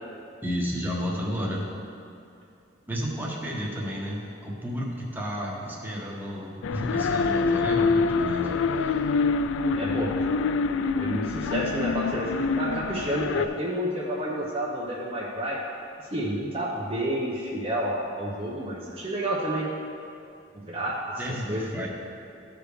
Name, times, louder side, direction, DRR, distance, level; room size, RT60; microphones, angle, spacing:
voice 1, 0.4-1.7 2.9-9.1 21.2-21.9, equal, 10° right, -4 dB, 1.3 m, -32 dB
sound 1, 6.6-13.5, left 4 dB, 85° left, 0.3 m, -26 dB
voice 2, 9.7-10.1 11.0-15.6 16.1-19.7 20.5-20.9 21.3-21.7, right 1 dB, 30° right, -5 dB, 0.9 m, -30 dB
14.5 x 5.2 x 3.2 m, 2.5 s
head